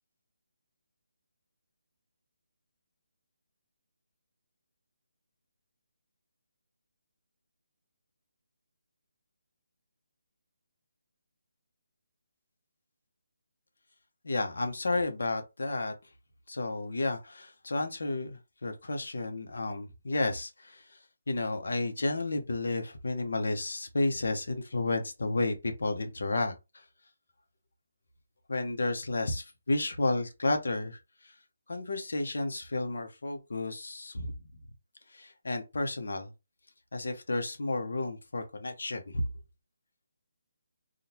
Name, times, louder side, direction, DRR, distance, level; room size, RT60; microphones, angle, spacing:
voice 1, 14.2-15.9 16.5-20.8 21.3-26.5 28.5-31.0 31.7-34.3 35.1-36.3 36.9-39.2, left 2 dB, 70° left, 1.0 m, -32 dB
3.7 x 2.4 x 2.9 m
hypercardioid pair, 175°, 0 cm